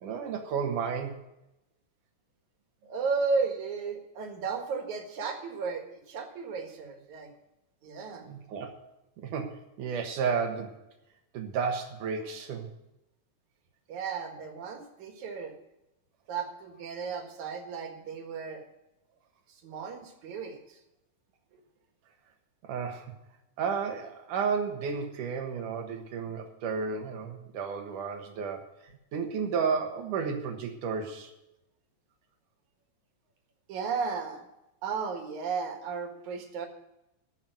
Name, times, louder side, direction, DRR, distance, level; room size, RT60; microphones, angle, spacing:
voice 1, 0.0-1.2 8.2-8.7 9.2-10.8 11.3-12.7 22.6-23.1 23.6-28.6 29.1-31.3, right 6 dB, 90° right, 4 dB, 3.0 m, -32 dB
voice 2, 2.8-7.3 7.8-8.3 13.9-15.5 16.3-18.6 19.5-20.8 33.7-34.4 34.8-36.7, right 5 dB, 70° right, 4 dB, 3.1 m, -34 dB
13.5 x 6.0 x 9.1 m, 0.89 s
omnidirectional pair, 3.5 m